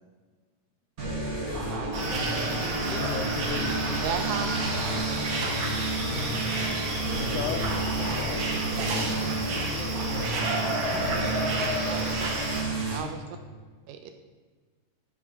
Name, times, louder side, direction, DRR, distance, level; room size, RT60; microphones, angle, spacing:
sound 1, 1.0-13.0, right 1 dB, 35° right, 1.7 m, -31 dB
voice 1, 1.3-2.4 7.9-9.9, left 1 dB, 40° left, -6 dB, 2.1 m, -40 dB
sound 2, 1.9-12.6, right 2 dB, 65° right, 1.2 m, -31 dB
voice 2, 2.8-4.0 7.1-7.7 11.6-11.8, left 7 dB, 75° left, 6 dB, 1.9 m, -35 dB
voice 3, 3.9-4.7 11.9-12.3 12.6-13.2 13.9-14.1, right 6 dB, 85° right, 5 dB, 1.7 m, -35 dB
6.3 x 5.7 x 6.0 m, 1.4 s
omnidirectional pair, 3.9 m